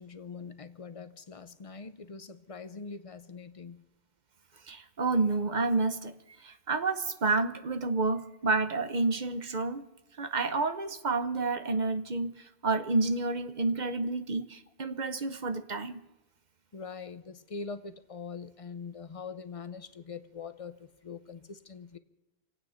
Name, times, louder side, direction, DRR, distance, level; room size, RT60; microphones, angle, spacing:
voice 1, 0.0-3.8 16.7-22.0, left 5 dB, 35° left, 0.8 m, -43 dB
voice 2, 4.7-6.1 6.4-9.8 10.2-12.4 12.6-16.0, right 3 dB, 45° right, 1.0 m, -29 dB
27.0 x 9.1 x 5.7 m
omnidirectional pair, 1.1 m